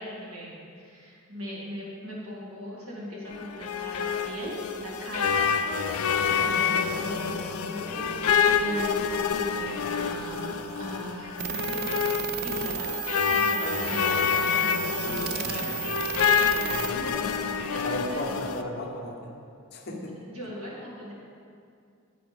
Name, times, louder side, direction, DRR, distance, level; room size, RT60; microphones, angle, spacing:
voice 1, 0.0-12.9 13.3-14.4 15.2-15.8 16.5-18.2 20.3-21.1, equal, 75° right, -5 dB, 2.2 m, -39 dB
sound 1, 3.3-18.6, left 6 dB, 75° left, 0.4 m, -27 dB
sound 2, 11.4-16.9, right 10 dB, 45° right, 0.4 m, -33 dB
voice 2, 15.0-16.0 16.7-17.1 17.8-19.3 19.7-20.5, left 1 dB, 45° left, 1 dB, 0.9 m, -36 dB
9.3 x 7.8 x 3.5 m, 2.3 s
head